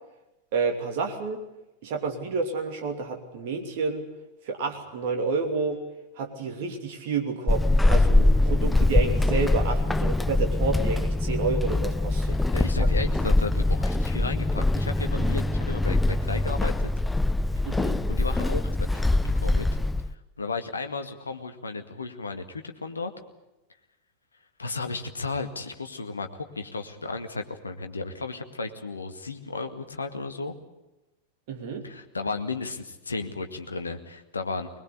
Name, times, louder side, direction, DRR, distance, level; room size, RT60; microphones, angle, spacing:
voice 1, 0.5-1.4 1.8-4.1 4.4-5.8 6.2-12.4 12.8-12.9 17.6-18.0 31.5-31.8, right 4 dB, 50° right, 4 dB, 2.9 m, -29 dB
Walk footsteps / Squeak, 7.5-20.1, left 2 dB, 5° left, 0.8 m, -23 dB
voice 2, 12.5-16.9 18.1-19.0 19.4-19.7 20.4-23.1 24.6-30.5 31.8-34.7, left 3 dB, 75° left, 6 dB, 2.0 m, -34 dB
22.5 x 21.0 x 8.3 m, 0.97 s
figure-of-eight pair, 90°, 0 cm